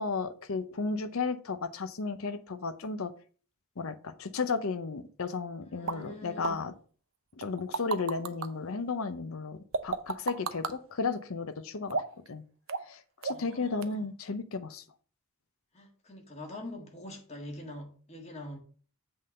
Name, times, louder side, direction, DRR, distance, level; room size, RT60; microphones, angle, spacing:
voice 1, 0.0-3.1 3.8-6.7 7.4-12.4 12.9-14.8, left 4 dB, 65° left, 0.7 m, -34 dB
voice 2, 5.7-6.6 13.3-14.1 15.7-18.6, left 1 dB, 30° left, 1.7 m, -44 dB
sound 1, 5.9-6.0 6.4-6.5 7.4-8.5 9.7-10.7 11.9-12.3 12.7-12.9 13.2-13.5 13.8-13.9, right 4 dB, 60° right, 0.7 m, -32 dB
7.9 x 3.7 x 6.4 m
head